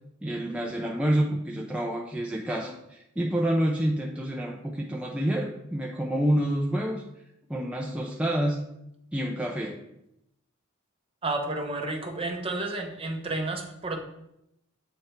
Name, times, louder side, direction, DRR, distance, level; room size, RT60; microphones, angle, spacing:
voice 1, 0.2-7.0 7.5-8.7 9.1-9.8, right 1 dB, 5° right, -1 dB, 0.4 m, -28 dB
voice 2, 11.2-14.0, right 2 dB, 25° right, 3 dB, 0.8 m, -31 dB
7.8 x 3.4 x 4.4 m, 0.81 s
head